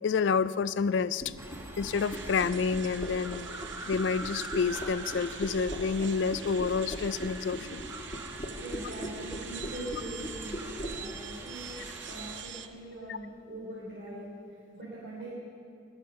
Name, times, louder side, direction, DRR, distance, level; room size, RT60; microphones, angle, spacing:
voice 1, 0.0-1.4 1.8-3.5 3.9-7.8 13.1-13.2, left 5 dB, 70° left, 16 dB, 0.4 m, -29 dB
sound 1, 1.2-11.0, equal, 30° left, 1.4 m, -38 dB
sound 2, 1.4-12.4, right 1 dB, 15° right, 1.3 m, -44 dB
sound 3, 1.9-12.7, right 8 dB, 75° right, 0.8 m, -45 dB
voice 2, 8.6-10.6 10.8-14.3 14.7-15.4, right 1 dB, 60° right, -7 dB, 3.8 m, -42 dB
20.5 x 7.3 x 6.6 m, 2.6 s
head